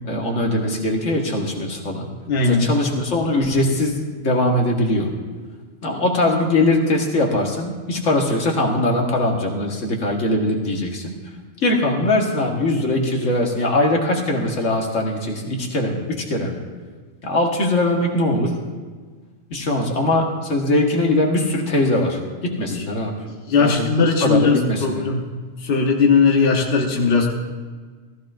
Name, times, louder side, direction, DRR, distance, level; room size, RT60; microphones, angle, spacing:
voice 1, 0.0-2.1 2.4-5.1 5.8-11.2 11.6-16.6 17.2-18.5 19.5-23.1 23.5-23.9 24.2-25.0, left 1 dB, 75° left, 0 dB, 1.8 m, -21 dB
voice 2, 2.3-2.7 22.7-22.8 23.5-25.3 25.6-27.4, left 4 dB, 55° left, 0 dB, 1.3 m, -18 dB
16.5 x 14.5 x 2.5 m, 1.5 s
omnidirectional pair, 1.3 m